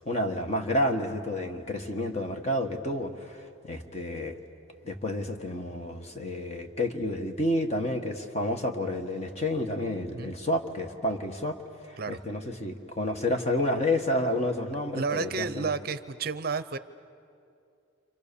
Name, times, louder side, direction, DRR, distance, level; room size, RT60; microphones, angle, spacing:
voice 1, 0.0-4.4 4.8-11.6 11.8-15.7, left 1 dB, 35° left, 5 dB, 1.5 m, -30 dB
voice 2, 14.9-16.8, right 4 dB, 50° right, 13 dB, 0.6 m, -31 dB
29.5 x 27.0 x 7.0 m, 2.5 s
head